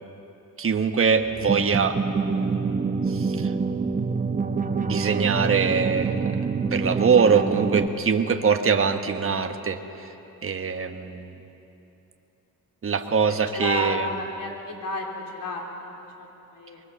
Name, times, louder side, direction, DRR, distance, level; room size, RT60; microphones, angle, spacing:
voice 1, 0.6-3.5 4.8-6.3 6.7-10.1 10.4-11.4 12.8-14.1, right 6 dB, 40° right, 6 dB, 1.3 m, -23 dB
sound 1, 1.3-7.9, right 4 dB, 20° right, 1.0 m, -26 dB
voice 2, 13.3-15.1 15.3-16.8, left 2 dB, 70° left, 1 dB, 4.0 m, -32 dB
24.0 x 21.5 x 7.0 m, 3.0 s
cardioid pair, 95°, 35 cm